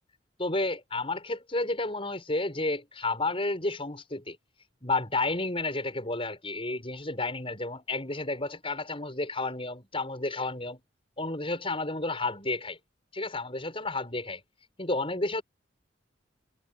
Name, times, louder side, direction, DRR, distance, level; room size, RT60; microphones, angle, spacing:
voice 1, 0.4-4.4 4.8-10.8 11.2-12.8 13.1-14.4 14.8-15.4, left 2 dB, 30° left, 6.7 m, -31 dB
head